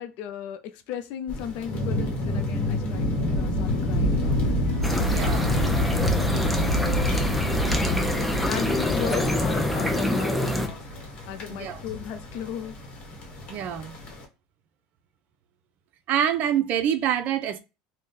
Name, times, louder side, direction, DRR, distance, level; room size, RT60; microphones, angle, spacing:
voice 1, 0.0-3.1 3.4-4.4 8.5-10.9 11.3-12.9, left 9 dB, 65° left, 0.5 m, -36 dB
sound 1, 1.3-14.2, left 1 dB, 40° left, 1.0 m, -31 dB
Wind, 3.0-9.9, left 1 dB, 85° left, 0.9 m, -27 dB
voice 2, 4.7-5.8 11.6-11.8 13.5-14.0 16.1-17.6, right 9 dB, 50° right, 0.5 m, -27 dB
sound 2, 4.8-10.7, left 1 dB, ahead, 0.4 m, -26 dB
2.6 x 2.2 x 3.7 m
supercardioid pair, 115°, 3 cm